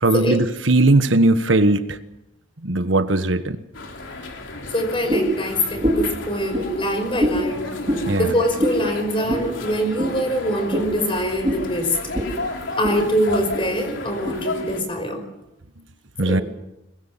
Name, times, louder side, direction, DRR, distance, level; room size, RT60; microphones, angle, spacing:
voice 1, 0.0-2.0 2.6-3.6 8.1-8.3 16.2-16.4, right 2 dB, 75° right, 1.4 m, -18 dB
sound 1, 3.7-14.8, left 2 dB, 75° left, 3.6 m, -33 dB
voice 2, 4.7-7.7 8.2-12.0 12.8-15.2 16.2-16.4, equal, 25° left, 5.3 m, -23 dB
sound 2, 5.1-5.4 5.8-6.1 6.5-6.7 7.2-7.4 7.8-8.1 8.6-8.8 9.3-9.5 10.0-10.1 10.7-10.9 11.4-11.6 12.1-12.3 12.6-13.0 13.5-13.6 14.3-14.4, equal, 25° right, 4.9 m, -22 dB
24.0 x 20.5 x 7.5 m
head